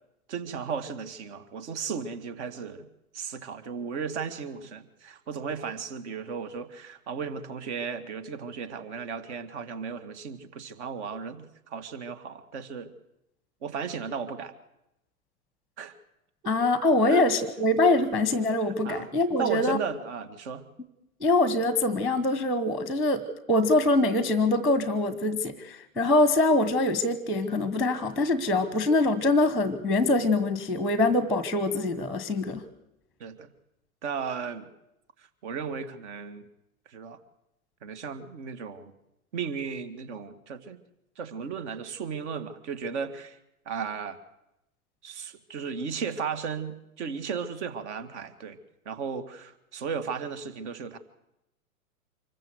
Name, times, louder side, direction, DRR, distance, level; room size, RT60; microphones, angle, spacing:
voice 1, 0.3-2.9 3.1-12.9 13.6-14.5 15.8-16.0 17.1-17.3 18.6-19.1 19.4-20.7 33.2-33.5 34.0-34.7 35.2-36.5 36.9-37.2 37.8-38.9 39.3-40.8 41.2-43.4 43.7-44.2 45.0-48.6 48.9-51.0, right 6 dB, 50° right, 12 dB, 2.0 m, -35 dB
voice 2, 16.4-19.8 21.2-32.6, left 2 dB, ahead, 13 dB, 1.1 m, -24 dB
25.5 x 14.5 x 8.0 m, 0.88 s
hypercardioid pair, 125°, 43 cm